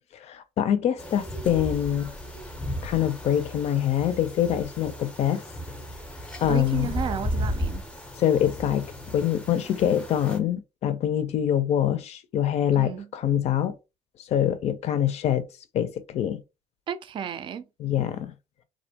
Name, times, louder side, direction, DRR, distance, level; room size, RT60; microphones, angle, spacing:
voice 1, 0.2-2.1 2.8-5.4 6.4-6.9 8.2-13.7 14.2-15.5 15.7-16.4 17.8-18.3, left 10 dB, 55° left, 0.4 m, -25 dB
sound 1, 1.0-10.4, equal, 10° left, 0.6 m, -35 dB
voice 2, 6.4-7.8 12.7-13.1 16.9-17.6, right 7 dB, 40° right, 0.3 m, -32 dB
2.4 x 2.1 x 2.7 m
cardioid pair, 90°, 13 cm